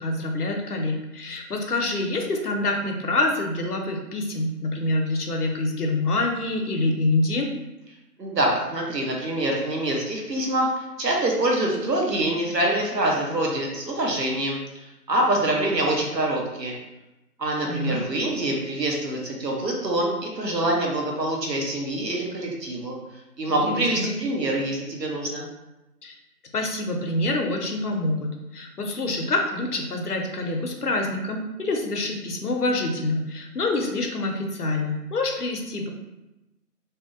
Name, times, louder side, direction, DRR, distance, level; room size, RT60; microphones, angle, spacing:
voice 1, 0.0-7.5 17.6-18.0 23.5-24.1 26.0-26.2 26.5-35.9, left 2 dB, 70° left, 2 dB, 0.6 m, -26 dB
voice 2, 8.2-16.7 17.4-23.0 23.4-25.5, right 1 dB, 90° right, -1 dB, 0.8 m, -25 dB
2.7 x 2.1 x 2.4 m, 0.98 s
figure-of-eight pair, 165°, 48 cm